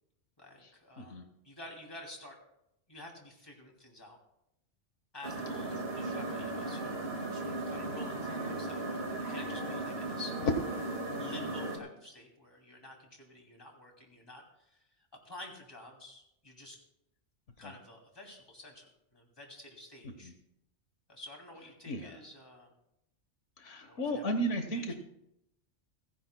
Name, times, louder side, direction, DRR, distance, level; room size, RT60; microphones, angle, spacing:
voice 1, 0.4-2.4 2.9-4.2 5.1-10.5 11.2-16.8 17.6-20.3 21.1-22.7 23.9-24.9, left 1 dB, 20° left, 1 dB, 2.7 m, -50 dB
sound 1, 5.2-11.8, right 2 dB, 55° right, 2.2 m, -36 dB
voice 2, 21.9-22.2 23.6-24.9, right 1 dB, 75° left, 6 dB, 1.4 m, -34 dB
30.0 x 10.5 x 2.2 m, 0.81 s
omnidirectional pair, 1.2 m